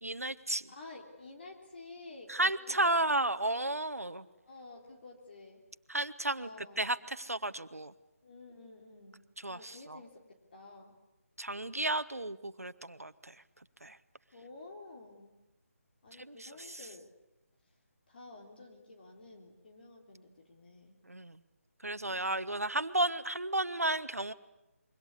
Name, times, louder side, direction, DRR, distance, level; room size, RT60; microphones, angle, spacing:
voice 1, 0.0-0.7 2.3-4.2 5.9-6.5 6.8-7.9 9.4-10.0 11.4-13.3 13.8-14.0 16.2-16.8 21.1-21.4 21.8-24.3, right 2 dB, 75° right, 12 dB, 1.3 m, -33 dB
voice 2, 0.7-3.0 4.4-5.6 6.4-6.9 8.2-9.2 9.5-11.0 14.3-15.4 16.0-17.1 18.1-21.0 22.1-22.4, left 3 dB, 40° left, 1 dB, 3.6 m, -51 dB
26.0 x 23.5 x 8.4 m, 0.94 s
figure-of-eight pair, 155°, 8 cm